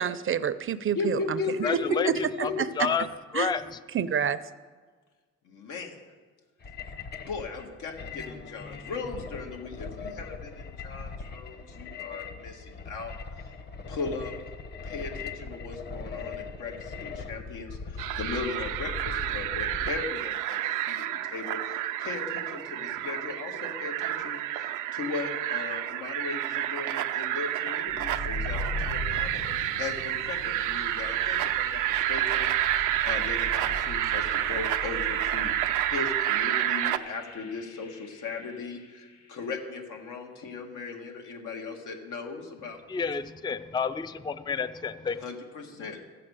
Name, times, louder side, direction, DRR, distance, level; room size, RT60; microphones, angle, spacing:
voice 1, 0.0-1.4 1.7-1.8 3.3-3.5 3.9-4.4, right 8 dB, 45° right, 0.6 m, -27 dB
voice 2, 0.9-2.7 5.5-6.0 7.3-13.1 13.9-14.3 14.8-32.5 33.0-42.8 45.2-46.0, left 4 dB, 85° left, 1.9 m, -37 dB
voice 3, 1.6-2.1 2.4-2.5 2.8-3.1 3.3-3.8 42.9-45.2, left 6 dB, 15° left, 0.4 m, -29 dB
sound 1, 6.6-20.0, left 4 dB, 35° left, 1.0 m, -40 dB
sound 2, 18.0-37.0, right 13 dB, 90° right, 0.6 m, -29 dB
sound 3, 27.9-39.7, left 2 dB, 60° left, 1.5 m, -40 dB
14.0 x 7.7 x 6.4 m
cardioid pair, 90°, 30 cm